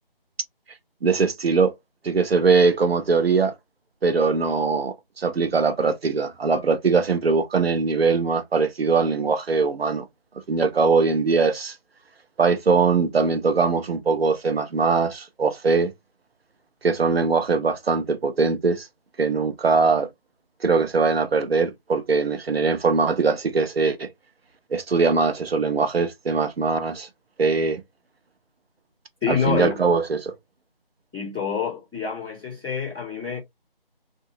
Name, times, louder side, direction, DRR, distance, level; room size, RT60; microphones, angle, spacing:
voice 1, 1.0-1.7 2.0-3.5 4.0-10.0 10.5-11.7 12.4-15.9 16.8-18.9 19.2-20.1 20.6-24.1 24.7-27.1 27.4-27.8 29.3-30.3, right 4 dB, 85° right, 0.7 m, -21 dB
voice 2, 29.2-29.8 31.1-33.4, left 7 dB, 5° right, 1.4 m, -27 dB
2.8 x 2.6 x 2.9 m
figure-of-eight pair, 180°, 29 cm